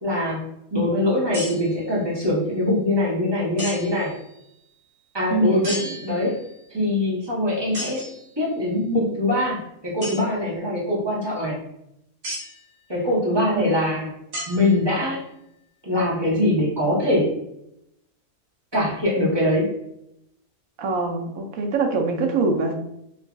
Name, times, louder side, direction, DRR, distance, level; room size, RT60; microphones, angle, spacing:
voice 1, 0.0-4.1 5.1-6.4 6.7-8.1 8.4-11.6 12.9-14.1 14.5-15.2 15.8-17.4 18.7-19.7, left 1 dB, 25° right, -7 dB, 0.7 m, -23 dB
sound 1, 1.3-1.9 3.6-4.1 5.6-6.5 7.7-8.3 10.0-10.2 12.2-12.6 14.3-15.1, equal, 40° right, 1.2 m, -34 dB
voice 2, 5.3-6.0 13.5-13.8 20.8-22.7, right 3 dB, 80° right, 3 dB, 1.0 m, -25 dB
3.6 x 2.3 x 2.3 m, 0.79 s
omnidirectional pair, 1.5 m